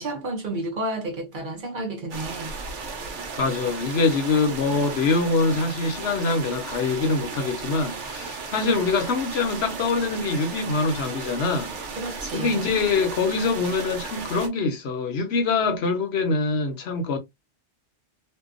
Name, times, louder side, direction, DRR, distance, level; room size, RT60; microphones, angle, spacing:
voice 1, 0.0-2.5 12.0-12.6, right 2 dB, 50° right, 0.7 m, -31 dB
sound 1, 2.1-14.5, right 4 dB, 80° right, 1.0 m, -35 dB
voice 2, 3.4-11.8 12.3-17.2, left 4 dB, 65° left, 0.9 m, -24 dB
2.7 x 2.2 x 2.4 m
omnidirectional pair, 1.2 m